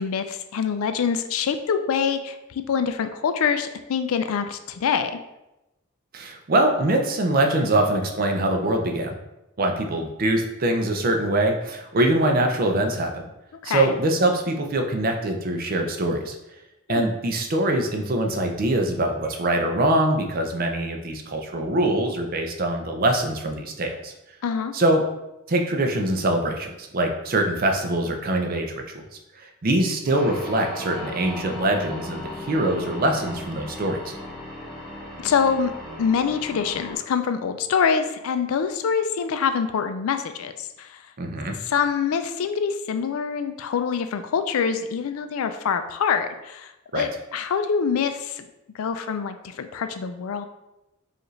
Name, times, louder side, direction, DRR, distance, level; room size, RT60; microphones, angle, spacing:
voice 1, 0.0-5.1 13.6-14.0 16.9-17.1 24.4-24.7 35.2-35.7 36.0-41.0 41.7-48.5 48.8-50.4, left 6 dB, 90° left, 9 dB, 0.4 m, -25 dB
voice 2, 6.1-9.1 9.6-13.1 13.6-16.3 16.9-24.1 24.7-25.0 25.5-29.0 29.4-34.1 41.2-41.6 46.9-47.1, right 1 dB, 45° right, 4 dB, 0.5 m, -23 dB
sound 1, 30.1-37.0, left 1 dB, ahead, 1.1 m, -37 dB
4.9 x 2.5 x 3.1 m, 0.93 s
head